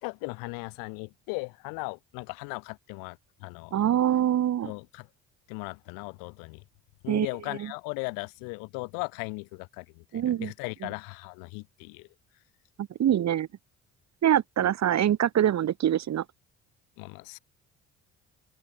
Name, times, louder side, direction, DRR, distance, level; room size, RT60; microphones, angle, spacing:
voice 1, 0.0-3.7 4.6-5.1 5.5-6.6 7.0-12.1 17.0-17.4, left 32 dB, 90° left, 3.8 m, -38 dB
voice 2, 3.7-4.7 7.1-7.7 10.1-10.5 12.8-13.5 14.2-16.2, right 11 dB, 55° right, 2.0 m, -25 dB
open air
supercardioid pair, 80°, 33 cm